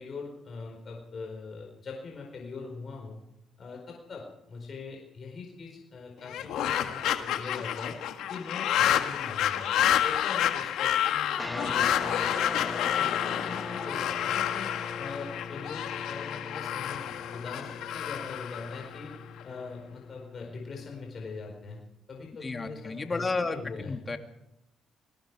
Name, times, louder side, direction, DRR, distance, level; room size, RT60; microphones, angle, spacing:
voice 1, 0.0-3.2 3.6-8.0 8.3-9.7 10.0-12.3 12.6-14.7 15.0-19.1 19.4-21.8 22.1-24.0, left 4 dB, 45° left, 0 dB, 4.5 m, -41 dB
sound 1, 6.2-19.4, left 10 dB, 85° left, 1.8 m, -29 dB
sound 2, 11.3-21.8, left 3 dB, 10° left, 2.2 m, -41 dB
voice 2, 22.4-24.2, left 3 dB, 30° left, 6 dB, 2.2 m, -32 dB
28.0 x 19.5 x 4.8 m, 0.84 s
cardioid pair, 90°, 0 cm